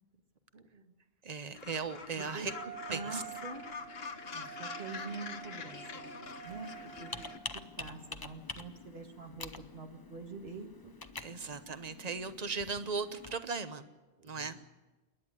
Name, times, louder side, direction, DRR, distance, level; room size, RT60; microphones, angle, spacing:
voice 1, 0.5-0.9 2.2-2.5 2.9-3.6 4.3-5.8 6.3-7.2 7.8-10.9 11.2-11.5 14.2-14.6, right 3 dB, 75° right, 3 dB, 2.2 m, -46 dB
voice 2, 1.2-2.5 2.9-3.2 11.2-13.8 14.2-14.6, right 4 dB, 40° right, 11 dB, 1.2 m, -37 dB
Gull seagull, 1.5-7.4, left 5 dB, 75° left, 1.4 m, -45 dB
Wind instrument woodwind instrument, 2.5-7.8, right 10 dB, 55° right, 7.9 m, -48 dB
Computer keyboard, 6.5-13.4, left 3 dB, 25° left, 0.8 m, -47 dB
28.0 x 11.0 x 9.9 m, 1.1 s
omnidirectional pair, 1.0 m